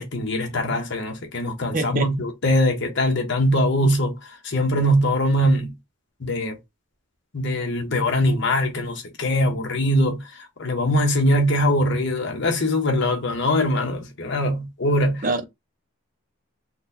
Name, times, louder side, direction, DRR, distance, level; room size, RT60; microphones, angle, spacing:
voice 1, 0.0-4.2 4.4-5.7 6.2-6.6 7.3-10.2 10.6-15.2, left 1 dB, 50° left, 0.9 m, -22 dB
voice 2, 1.7-2.1 15.2-15.4, right 3 dB, 40° right, 0.5 m, -24 dB
3.9 x 2.2 x 2.6 m
head